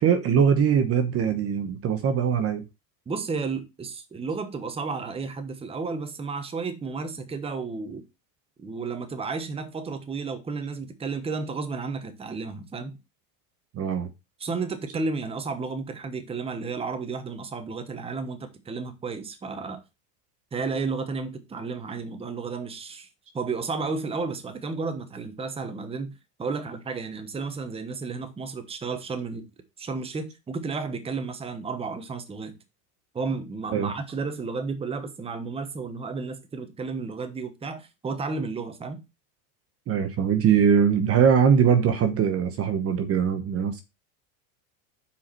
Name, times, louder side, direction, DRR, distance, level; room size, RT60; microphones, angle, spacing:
voice 1, 0.0-2.6 13.7-14.1 33.7-33.9 39.9-43.8, right 7 dB, 30° right, 1.0 m, -21 dB
voice 2, 3.1-8.0 8.6-13.0 14.4-19.8 20.5-23.1 23.3-26.1 26.4-29.4 29.8-32.6 33.1-39.0, right 4 dB, 15° right, 1.1 m, -32 dB
7.1 x 4.8 x 4.4 m
supercardioid pair, 140°, 46 cm